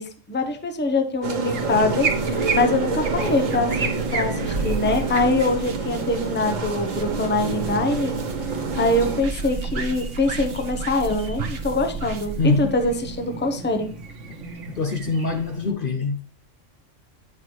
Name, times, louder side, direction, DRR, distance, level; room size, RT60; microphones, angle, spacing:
voice 1, 0.0-8.2 8.7-13.9, left 2 dB, 10° left, 0.7 m, -24 dB
sound 1, 1.2-9.2, right 4 dB, 90° right, 1.6 m, -28 dB
sound 2, 1.5-13.4, right 4 dB, 55° right, 1.2 m, -32 dB
Chirp tweet, 1.5-15.7, right 2 dB, 70° right, 1.4 m, -39 dB
voice 2, 12.4-12.7 14.8-16.2, left 4 dB, 50° left, 0.8 m, -23 dB
9.5 x 5.9 x 3.0 m
omnidirectional pair, 1.3 m